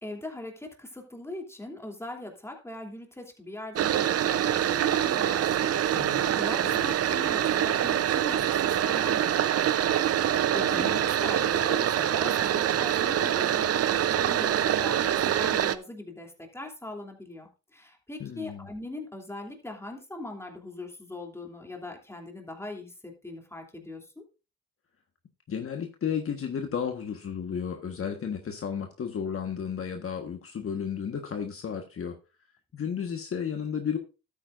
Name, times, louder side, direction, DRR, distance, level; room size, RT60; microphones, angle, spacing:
voice 1, 0.0-13.8 14.1-24.2, left 2 dB, 10° left, 2 dB, 2.9 m, -41 dB
sound 1, 3.7-15.8, right 10 dB, 55° right, 0.7 m, -25 dB
voice 2, 5.9-6.8 10.6-11.0 18.2-18.7 25.5-32.2 32.7-34.0, left 7 dB, 45° left, 4 dB, 1.4 m, -33 dB
12.5 x 8.8 x 2.5 m, 0.31 s
cardioid pair, 90°, 30 cm